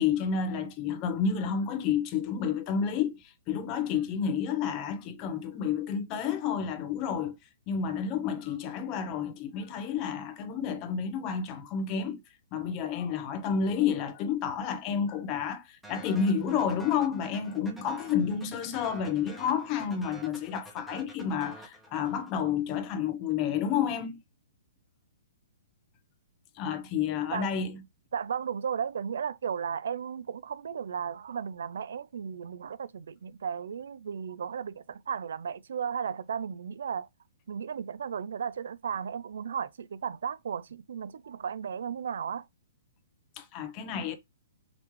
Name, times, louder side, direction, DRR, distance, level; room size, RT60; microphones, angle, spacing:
voice 1, 0.0-7.4 7.7-12.2 12.5-24.2 26.6-27.8 43.4-44.2, left 7 dB, 30° left, 0.8 m, -30 dB
sound 1, 15.8-22.5, right 1 dB, ahead, 1.1 m, -49 dB
voice 2, 27.3-27.7 28.1-37.1 37.5-42.5, right 7 dB, 75° right, 0.4 m, -35 dB
5.0 x 3.1 x 3.1 m
hypercardioid pair, 150°, 0 cm